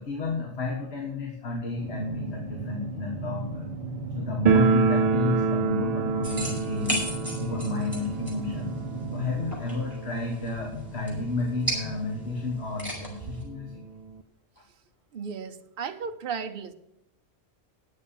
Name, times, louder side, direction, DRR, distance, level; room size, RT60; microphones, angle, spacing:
voice 1, 0.0-3.8 4.2-7.0 7.4-8.8 9.1-13.8 14.6-14.7, left 3 dB, 55° left, 0 dB, 1.8 m, -31 dB
sound 1, 1.8-9.6, right 2 dB, 30° right, 1.2 m, -36 dB
sound 2, 4.5-11.2 11.4-11.5 11.8-11.9 12.6-12.7 13.0-14.2, right 5 dB, 75° right, 0.3 m, -27 dB
sound 3, 6.2-13.4, right 1 dB, 10° left, 5.4 m, -36 dB
voice 2, 15.1-16.7, right 6 dB, 50° right, 8 dB, 0.9 m, -35 dB
10.0 x 8.1 x 7.1 m, 0.82 s
omnidirectional pair, 1.3 m